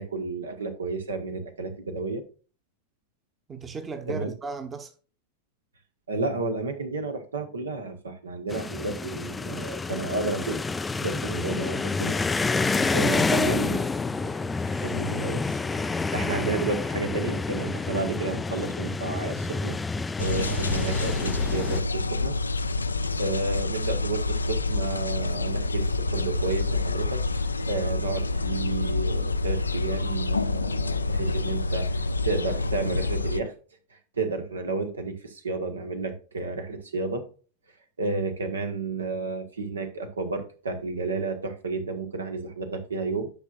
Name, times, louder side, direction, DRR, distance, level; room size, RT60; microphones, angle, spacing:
voice 1, 0.0-2.2 4.1-4.3 6.1-10.6 11.0-12.1 12.9-13.9 14.3-14.4 14.7-19.8 20.2-22.3 23.2-33.5 33.9-37.3 38.0-43.3, right 3 dB, 70° right, 1.3 m, -31 dB
voice 2, 3.5-4.9 12.7-13.5, right 4 dB, 20° right, 1.1 m, -36 dB
sound 1, 8.5-21.8, left 3 dB, 10° left, 0.4 m, -28 dB
sound 2, 20.2-33.4, left 3 dB, 80° left, 0.4 m, -27 dB
10.5 x 6.1 x 2.5 m
figure-of-eight pair, 90°, 0 cm